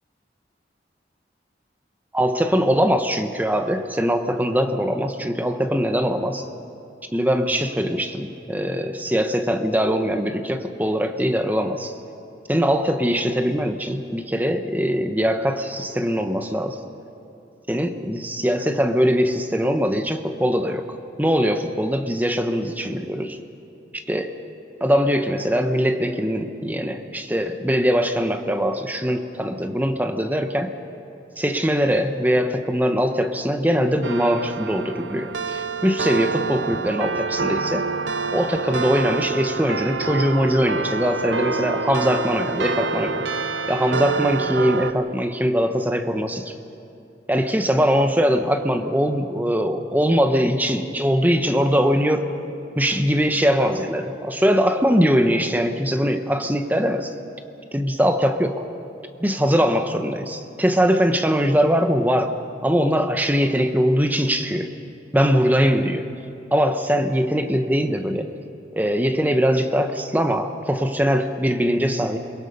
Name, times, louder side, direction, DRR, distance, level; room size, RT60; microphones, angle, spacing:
voice 1, 2.1-6.5 7.1-12.0 12.5-16.8 17.7-20.8 21.2-23.4 23.9-24.4 24.8-30.7 31.4-37.8 38.3-43.2 43.7-46.6 47.3-52.2 52.8-57.1 57.7-58.6 59.2-62.3 62.6-64.7 65.1-66.1 66.5-68.3 68.7-72.2, equal, 10° right, 7 dB, 1.0 m, -21 dB
sound 1, 34.0-44.9, right 4 dB, 80° right, 0.7 m, -27 dB
28.5 x 22.5 x 5.4 m, 2.6 s
head